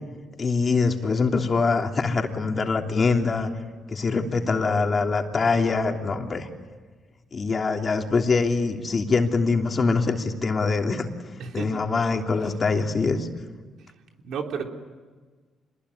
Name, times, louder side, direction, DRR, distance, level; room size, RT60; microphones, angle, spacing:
voice 1, 0.4-3.5 3.9-6.5 7.3-11.1 11.5-13.3, left 4 dB, 40° left, 3 dB, 3.2 m, -23 dB
voice 2, 14.2-14.6, right 6 dB, 75° right, 3 dB, 3.5 m, -31 dB
26.5 x 21.5 x 9.9 m, 1.4 s
cardioid pair, 90°, 0 cm